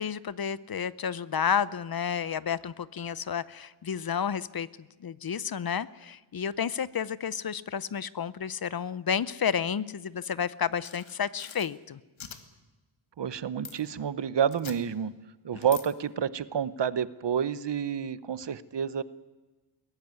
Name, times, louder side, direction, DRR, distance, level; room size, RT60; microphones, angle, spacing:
voice 1, 0.0-4.7 5.0-12.0, left 7 dB, 45° left, 18 dB, 0.6 m, -31 dB
sound 1, 10.8-11.7 12.2-12.4 13.6-13.8 14.5-14.8 15.6-15.8, left 6 dB, 65° left, 1.9 m, -42 dB
voice 2, 13.2-15.1 15.4-19.0, right 8 dB, 55° right, 16 dB, 0.9 m, -29 dB
22.0 x 17.0 x 9.6 m, 1.2 s
wide cardioid pair, 135°, 49 cm